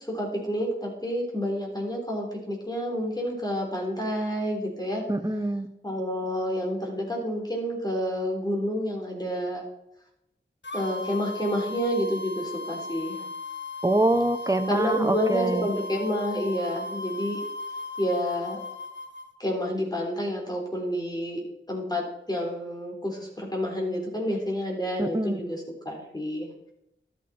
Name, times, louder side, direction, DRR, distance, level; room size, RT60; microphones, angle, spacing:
voice 1, 0.0-5.0 5.8-9.6 10.7-13.2 14.7-17.4 18.0-18.6 19.4-26.7, equal, 20° left, -1 dB, 3.9 m, -29 dB
voice 2, 5.1-5.7 13.8-15.7 25.0-25.4, right 1 dB, 15° right, 9 dB, 1.1 m, -25 dB
sound 1, 10.6-19.3, left 2 dB, 65° left, 1.2 m, -37 dB
13.0 x 8.2 x 4.4 m, 0.82 s
cardioid pair, 40°, 20 cm